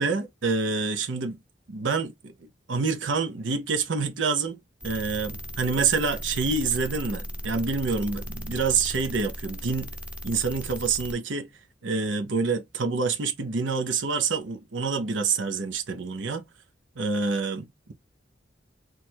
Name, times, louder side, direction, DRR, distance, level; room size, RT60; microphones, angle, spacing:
voice 1, 0.0-1.4 1.7-2.3 2.7-4.6 4.8-9.9 10.2-11.5 11.8-16.4 17.0-17.9, right 4 dB, 90° right, 0.7 m, -27 dB
sound 1, 4.8-11.1, equal, 5° right, 0.5 m, -37 dB
3.1 x 2.3 x 4.3 m
head